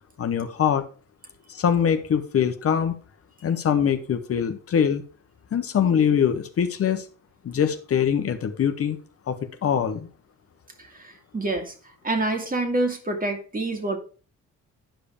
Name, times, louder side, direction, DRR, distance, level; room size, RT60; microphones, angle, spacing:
voice 1, 0.2-0.8 1.5-2.9 3.4-5.0 5.5-7.1 7.4-9.0 9.3-10.1, left 8 dB, 50° left, 8 dB, 1.0 m, -23 dB
voice 2, 10.8-11.7 12.0-14.0, right 2 dB, 30° right, 5 dB, 2.1 m, -27 dB
10.0 x 5.0 x 5.1 m, 0.38 s
cardioid pair, 90°, 30 cm